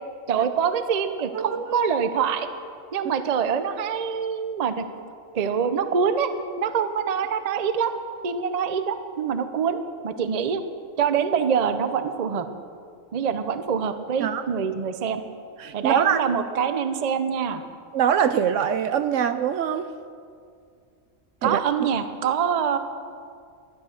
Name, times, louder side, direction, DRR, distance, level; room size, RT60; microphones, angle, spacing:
voice 1, 0.3-2.5 2.9-4.8 5.3-6.3 6.6-7.9 8.2-9.8 10.0-10.6 11.0-12.5 13.1-15.2 15.7-17.6 21.4-22.8, right 7 dB, 45° right, 10 dB, 0.6 m, -25 dB
voice 2, 1.3-1.9 14.2-14.4 15.6-16.2 17.9-19.9 21.4-21.6, right 8 dB, 70° right, 11 dB, 0.9 m, -23 dB
12.0 x 10.5 x 6.5 m, 2.3 s
omnidirectional pair, 1.4 m